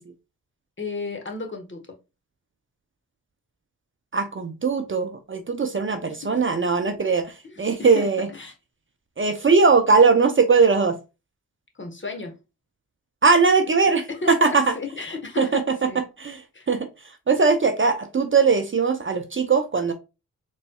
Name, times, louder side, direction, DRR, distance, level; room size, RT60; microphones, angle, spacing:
voice 1, 0.8-1.8 6.1-6.4 7.4-8.5 11.7-12.3 14.1-16.0 16.5-16.6, left 4 dB, 30° left, 1.2 m, -34 dB
voice 2, 4.1-8.3 9.2-11.0 13.2-14.7 15.4-15.9 16.2-16.4 16.7-16.9 17.3-19.9, right 4 dB, 35° right, 0.6 m, -20 dB
4.0 x 3.2 x 2.3 m
supercardioid pair, 40°, 37 cm